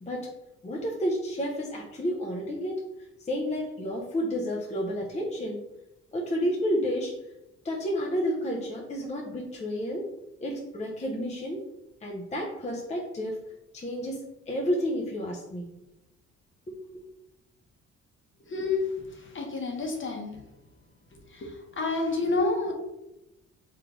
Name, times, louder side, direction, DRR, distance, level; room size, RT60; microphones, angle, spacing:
voice 1, 0.0-0.3 0.6-5.6 6.1-7.1 7.6-10.1 10.4-11.6 12.0-13.4 13.7-15.7 16.7-17.0, equal, 25° left, -1 dB, 0.7 m, -31 dB
voice 2, 18.5-18.8 19.3-20.4 21.3-21.5 21.8-22.7, left 3 dB, 40° left, 2 dB, 1.0 m, -28 dB
3.8 x 3.3 x 3.1 m, 0.90 s
cardioid pair, 90°, 30 cm